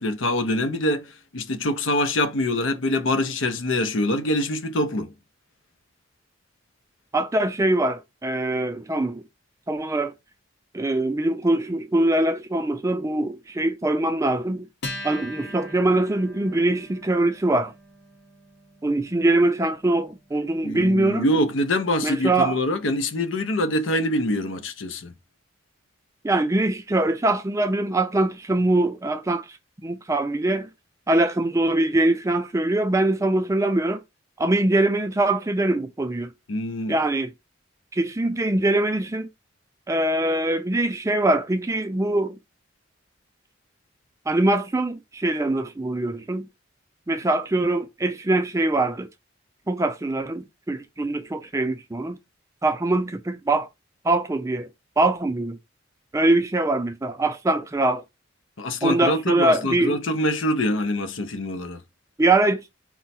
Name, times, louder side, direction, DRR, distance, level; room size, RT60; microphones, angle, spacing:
voice 1, 0.0-5.1 20.6-25.1 36.5-37.0 58.6-61.8, left 1 dB, 80° left, 0.7 m, -24 dB
voice 2, 7.1-9.2 9.7-10.1 10.7-14.7 15.0-17.7 18.8-21.3 22.0-22.6 26.2-29.5 29.8-30.7 31.1-34.0 34.4-36.3 36.9-37.3 37.9-39.3 39.9-42.4 44.3-46.5 47.1-49.1 49.7-52.2 52.6-53.7 54.0-54.7 55.0-55.6 56.1-58.0 58.8-60.0 62.2-62.6, right 2 dB, 15° right, 0.4 m, -23 dB
Acoustic guitar, 14.8-21.7, left 1 dB, 60° left, 1.4 m, -42 dB
4.5 x 2.1 x 4.1 m
head